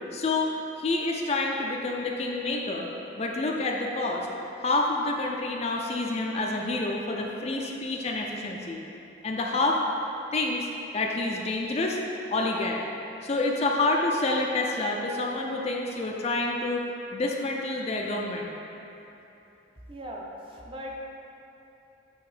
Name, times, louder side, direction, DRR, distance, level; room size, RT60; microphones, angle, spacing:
voice 1, 0.1-2.9 3.2-4.3 4.6-8.8 9.2-9.8 10.3-10.7 10.9-12.0 12.3-12.8 13.2-18.5, left 2 dB, 35° left, 0 dB, 0.4 m, -28 dB
voice 2, 19.9-21.0, equal, 30° right, -2 dB, 0.6 m, -39 dB
8.5 x 3.1 x 4.9 m, 3.0 s
head